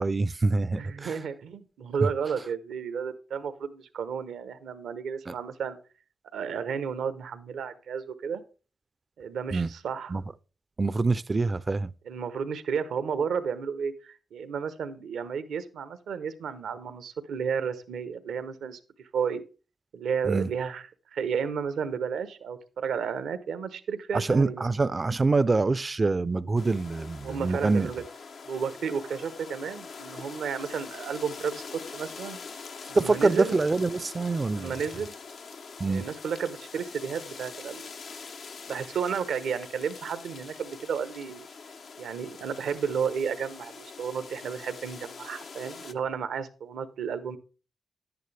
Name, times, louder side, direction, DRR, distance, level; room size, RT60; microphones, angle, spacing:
voice 1, 0.0-1.2 5.3-5.4 9.5-9.7 10.1-10.2 10.8-11.9 20.2-20.5 24.1-27.9 32.9-34.7 35.8-36.0, right 3 dB, 40° right, 0.5 m, -25 dB
voice 2, 0.7-5.8 6.3-8.4 9.2-10.1 12.1-19.4 19.9-20.8 21.1-24.7 27.2-28.0 28.5-32.4 32.9-33.6 34.5-35.1 35.9-37.9 38.7-41.5 42.0-47.4, right 6 dB, 80° right, 0.9 m, -32 dB
Leaves rustle in the wind, 26.6-45.9, left 5 dB, 70° left, 0.8 m, -44 dB
11.0 x 9.4 x 3.3 m
supercardioid pair, 45°, 0 cm